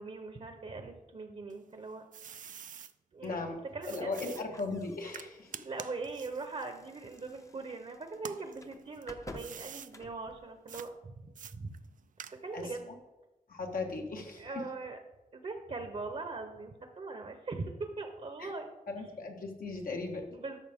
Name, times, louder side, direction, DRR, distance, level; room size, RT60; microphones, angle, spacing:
voice 1, 0.0-2.0 3.1-3.4 3.7-4.1 5.6-11.7 12.4-12.9 14.4-15.0 15.3-18.7 20.3-20.6, right 3 dB, 50° right, 6 dB, 0.8 m, -41 dB
sound 1, 1.5-2.9 3.8-7.7 8.1-9.9 10.7-10.9 11.4-12.7, right 8 dB, 65° right, 0.4 m, -47 dB
voice 2, 3.2-5.5 12.5-12.9 13.5-14.6 18.4-18.5 18.9-20.4, left 3 dB, 80° left, 2 dB, 1.4 m, -38 dB
sound 2, 4.1-11.0, left 2 dB, 20° left, 0.6 m, -54 dB
13.0 x 5.7 x 3.6 m, 1.0 s
wide cardioid pair, 100°, 15 cm